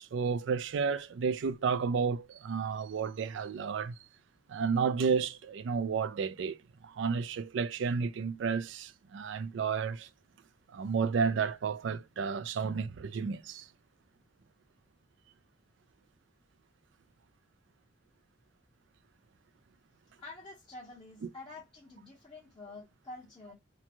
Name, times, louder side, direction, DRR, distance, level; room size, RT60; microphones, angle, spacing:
voice 1, 0.0-4.0 4.5-6.6 6.8-10.1 10.7-13.7, right 5 dB, 65° right, 0.3 m, -32 dB
voice 2, 20.2-23.5, left 2 dB, 25° left, 0.9 m, -48 dB
2.9 x 2.2 x 2.5 m
head